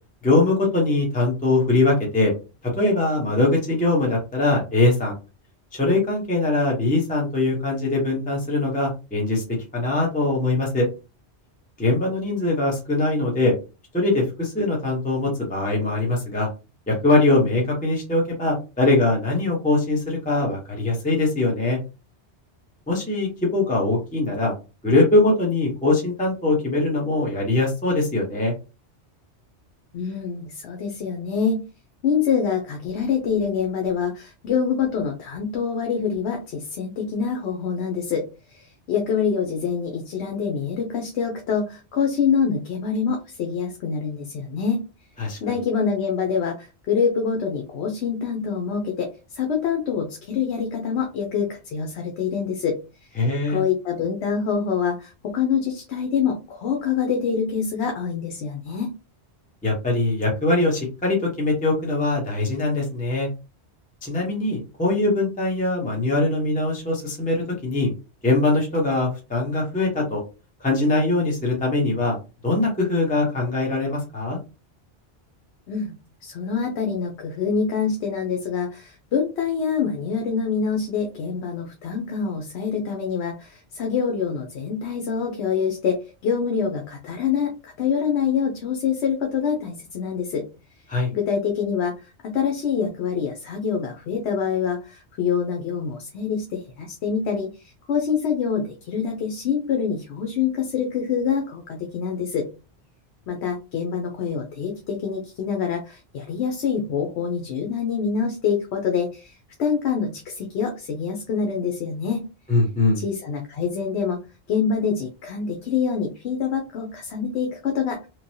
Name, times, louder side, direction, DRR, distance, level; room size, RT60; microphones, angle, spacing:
voice 1, 0.2-2.3 2.6-5.2 5.7-9.4 9.7-10.9 11.8-13.5 13.9-16.5 16.9-21.8 22.9-24.5 24.8-28.5 45.2-45.4 53.2-53.6 59.6-63.3 64.0-67.9 68.2-70.2 70.6-72.2 72.4-74.4 90.9-91.1 112.5-113.0, left 2 dB, 10° left, -2 dB, 0.7 m, -22 dB
voice 2, 29.9-31.6 32.0-44.8 45.4-52.8 53.5-58.9 75.7-75.9 76.2-90.4 91.1-102.5 103.3-112.2 113.0-114.2 114.5-118.1, left 6 dB, 75° left, 3 dB, 0.9 m, -25 dB
3.1 x 2.2 x 2.6 m, 0.30 s
omnidirectional pair, 1.1 m